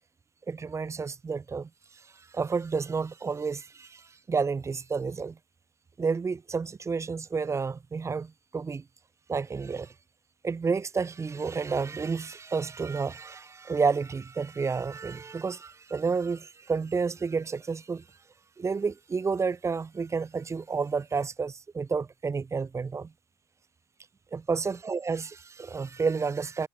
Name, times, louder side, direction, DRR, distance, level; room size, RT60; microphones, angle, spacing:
voice 1, 0.5-1.7 2.1-5.4 6.0-8.8 9.3-9.9 10.4-18.0 18.6-23.1 24.3-26.7, right 5 dB, 25° right, 3.5 m, -30 dB
figure-of-eight pair, 65°, 12 cm